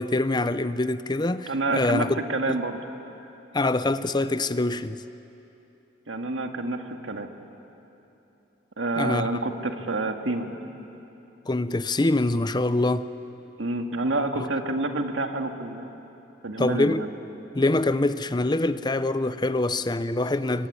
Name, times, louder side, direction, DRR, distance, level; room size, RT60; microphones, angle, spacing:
voice 1, 0.0-2.2 2.5-2.6 3.5-5.0 9.0-9.3 11.5-13.1 16.6-17.0 17.5-20.7, left 2 dB, 25° left, 0.6 m, -24 dB
voice 2, 1.5-2.8 6.1-7.3 8.8-10.5 13.6-15.9 16.4-17.1, right 2 dB, 80° right, 2.0 m, -28 dB
26.5 x 23.0 x 9.8 m
head